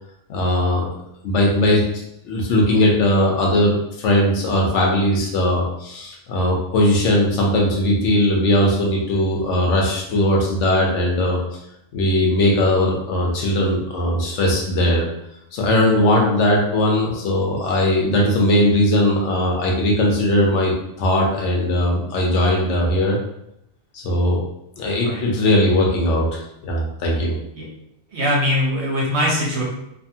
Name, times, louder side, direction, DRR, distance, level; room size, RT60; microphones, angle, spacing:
voice 1, 0.3-0.9 1.2-1.8 2.2-11.4 11.9-15.1 15.5-20.7 21.0-23.2 23.9-24.4 24.8-27.4, left 1 dB, 85° left, -1 dB, 1.0 m, -19 dB
voice 2, 28.1-29.6, left 1 dB, 70° right, -3 dB, 1.1 m, -21 dB
2.6 x 2.6 x 2.7 m, 0.79 s
omnidirectional pair, 1.2 m